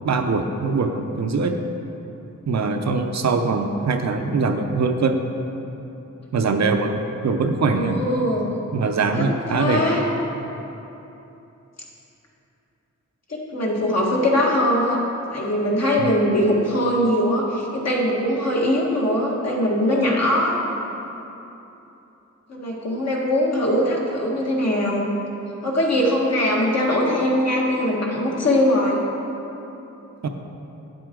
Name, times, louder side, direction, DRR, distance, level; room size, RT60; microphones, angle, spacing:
voice 1, 0.0-1.6 2.5-5.2 6.3-8.0 8.7-9.8 16.0-16.1 30.2-30.3, right 4 dB, 60° right, 5 dB, 0.7 m, -22 dB
voice 2, 7.7-8.5 9.1-10.0 13.3-15.0 15.3-20.6 22.5-25.1 25.6-29.0, left 1 dB, 55° left, -3 dB, 1.7 m, -21 dB
9.0 x 7.7 x 3.7 m, 3.0 s
cardioid pair, 70°, 31 cm